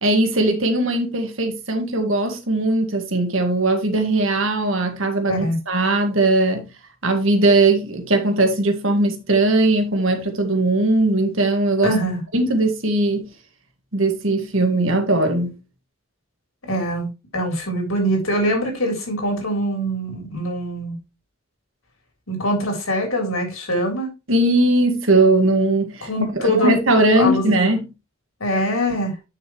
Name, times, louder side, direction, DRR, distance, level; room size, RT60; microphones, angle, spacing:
voice 1, 0.0-6.7 7.0-12.0 12.3-13.2 13.9-15.5 24.3-27.8, right 2 dB, 75° right, 1.9 m, -19 dB
voice 2, 11.8-12.2 16.6-21.0 22.3-24.1 26.0-26.7 27.1-27.5 28.4-29.2, equal, 90° left, 3.8 m, -23 dB
9.3 x 6.4 x 3.1 m
head